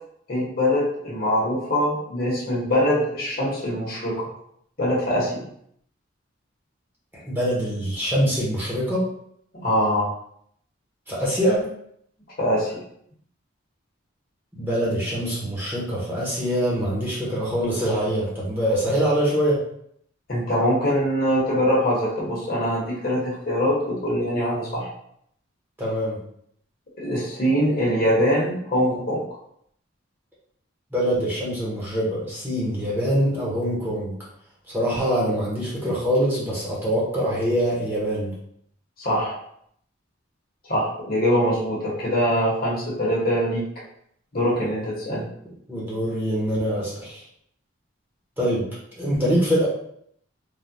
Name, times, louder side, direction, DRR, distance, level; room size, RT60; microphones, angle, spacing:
voice 1, 0.3-4.3 4.8-5.3 9.5-10.1 12.4-12.7 20.3-24.9 27.0-29.2 39.0-39.4 40.7-43.6 44.3-45.2, equal, 45° left, -5 dB, 1.0 m, -23 dB
voice 2, 7.1-9.0 11.1-11.7 14.5-19.6 25.8-26.2 30.9-34.1 34.7-38.3 45.7-47.2 48.4-48.7 49.0-49.7, equal, 10° right, -7 dB, 0.7 m, -24 dB
3.3 x 2.1 x 2.6 m, 0.69 s
head